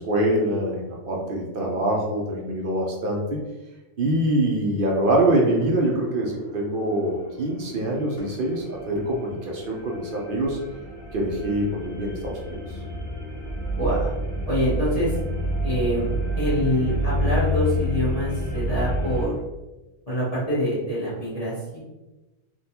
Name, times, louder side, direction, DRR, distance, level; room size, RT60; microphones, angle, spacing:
voice 1, 0.0-3.4 4.0-10.6 11.1-12.6, right 1 dB, 55° right, -1 dB, 0.7 m, -24 dB
sound 1, 5.4-19.3, equal, 5° left, 1.1 m, -30 dB
voice 2, 13.8-14.1 14.5-15.1 15.6-16.1 16.4-19.4 20.1-21.8, equal, 35° left, -10 dB, 1.0 m, -25 dB
3.6 x 2.3 x 2.8 m, 1.1 s
omnidirectional pair, 1.2 m